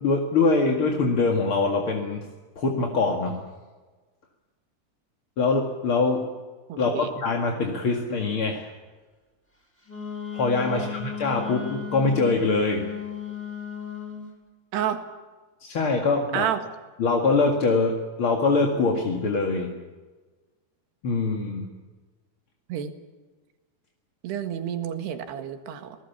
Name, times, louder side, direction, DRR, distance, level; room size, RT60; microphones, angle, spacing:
voice 1, 0.0-2.3 2.6-3.4 5.4-6.3 6.8-8.7 10.3-12.9 15.6-16.5 17.0-19.7 21.0-21.7, left 3 dB, 40° left, 1 dB, 2.2 m, -23 dB
voice 2, 6.7-7.1 10.7-10.9 14.7-15.0 16.3-16.6 22.7-22.9 24.2-26.0, right 10 dB, 85° right, 7 dB, 3.9 m, -29 dB
Wind instrument woodwind instrument, 9.9-14.3, left 8 dB, 5° left, 6.0 m, -35 dB
28.5 x 19.0 x 7.1 m, 1.3 s
omnidirectional pair, 4.7 m